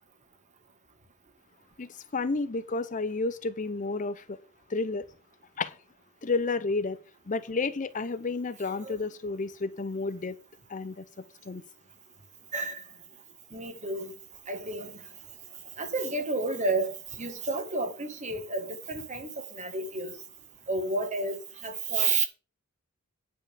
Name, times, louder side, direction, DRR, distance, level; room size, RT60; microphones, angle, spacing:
voice 1, 1.8-4.4 4.7-5.1 5.6-5.7 6.2-7.0 7.3-10.4 10.7-11.0 11.5-11.6, left 3 dB, 35° left, 0.6 m, -31 dB
voice 2, 13.5-14.1 14.5-14.9 15.8-16.9 17.2-19.3 19.5-20.1 20.7-21.4 21.6-22.3, right 3 dB, 35° right, 1.7 m, -30 dB
10.0 x 5.5 x 6.8 m
head